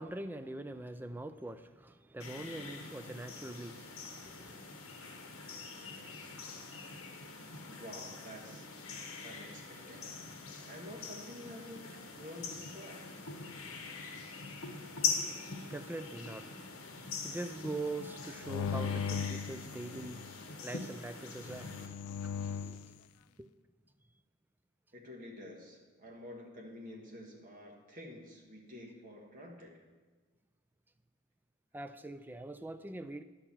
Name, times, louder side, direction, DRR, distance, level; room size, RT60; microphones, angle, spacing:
voice 1, 0.0-4.5 15.0-22.9 23.4-23.5 31.7-33.2, right 2 dB, 10° right, 10 dB, 0.3 m, -44 dB
sound 1, 2.2-21.9, left 5 dB, 70° left, 1.3 m, -43 dB
voice 2, 7.7-8.7 9.2-10.2 10.7-13.1 24.9-29.9, left 1 dB, 40° right, 0 dB, 1.6 m, -49 dB
sound 2, 18.4-20.4 21.4-22.9, left 7 dB, 85° left, 0.3 m, -38 dB
11.0 x 4.5 x 7.2 m, 1.4 s
head